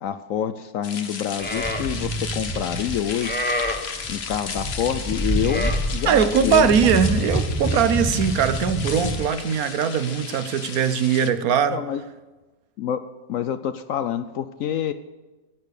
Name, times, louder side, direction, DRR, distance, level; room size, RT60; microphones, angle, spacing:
voice 1, 0.0-3.4 4.1-6.9 11.7-12.0 12.8-13.0 13.3-14.9, left 9 dB, 70° left, 11 dB, 0.8 m, -27 dB
sound 1, 0.8-11.3, left 6 dB, 45° left, 1.1 m, -35 dB
Livestock farm animals working animals, 1.4-9.3, equal, 5° left, 0.9 m, -27 dB
voice 2, 6.1-11.8, right 7 dB, 65° right, 12 dB, 1.2 m, -21 dB
16.5 x 8.7 x 6.5 m, 1.2 s
omnidirectional pair, 1.7 m